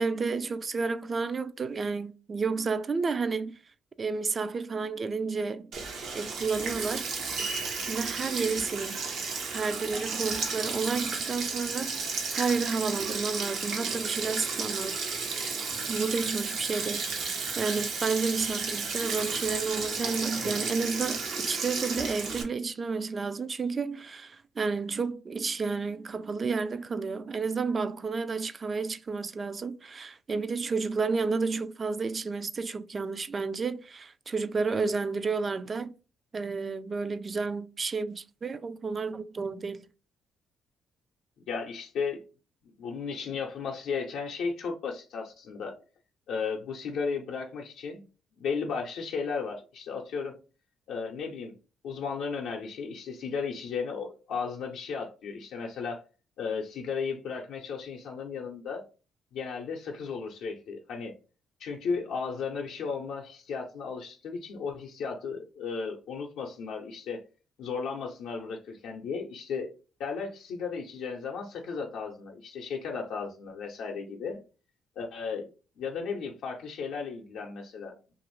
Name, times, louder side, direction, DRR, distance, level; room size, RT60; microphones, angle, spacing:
voice 1, 0.0-3.6 4.0-5.7 6.1-7.1 7.9-9.0 9.5-15.0 15.9-35.9 36.3-39.8, right 4 dB, 35° right, 0.3 m, -31 dB
Sink (filling or washing), 5.7-22.4, right 4 dB, 80° right, 0.8 m, -33 dB
voice 2, 41.5-42.2 42.8-45.8 46.3-48.0 48.4-50.3 50.9-51.5 51.8-56.0 56.4-58.8 59.3-61.1 61.6-67.2 67.6-69.7 70.0-74.4 75.0-75.5 75.8-77.9, left 5 dB, 80° left, 0.5 m, -35 dB
2.7 x 2.4 x 3.0 m
cardioid pair, 90°, 0 cm